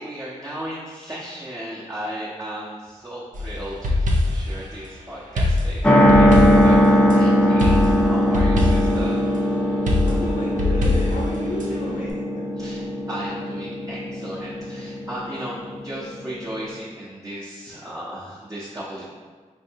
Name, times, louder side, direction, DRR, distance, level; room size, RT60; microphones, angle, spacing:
voice 1, 0.0-9.1 12.6-19.0, right 1 dB, 25° right, -8 dB, 0.7 m, -35 dB
sound 1, 3.3-4.6 5.4-7.2 7.6-9.1 9.9-11.7, left 2 dB, 75° right, 0.5 m, -22 dB
sound 2, 5.8-16.7, equal, 10° left, 0.4 m, -20 dB
voice 2, 10.1-12.5, left 1 dB, 80° left, -3 dB, 0.6 m, -32 dB
4.4 x 2.6 x 2.8 m, 1.4 s
wide cardioid pair, 75°, 13 cm